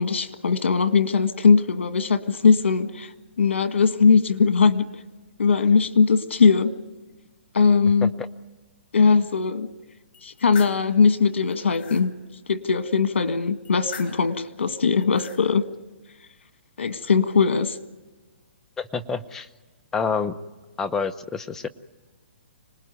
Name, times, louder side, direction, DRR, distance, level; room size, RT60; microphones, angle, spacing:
voice 1, 0.0-3.1 3.4-4.9 5.4-6.7 7.5-8.1 8.9-9.7 10.2-12.1 12.5-15.6 16.8-17.8, left 5 dB, 85° left, 1.7 m, -20 dB
sound 1, 10.1-10.8 11.4-12.1 13.6-14.3 14.9-15.4, left 6 dB, 40° left, 3.9 m, -41 dB
voice 2, 18.8-19.5 19.9-20.3 20.8-21.7, left 5 dB, 10° left, 0.8 m, -27 dB
26.0 x 20.0 x 9.4 m
hypercardioid pair, 155°, 6 cm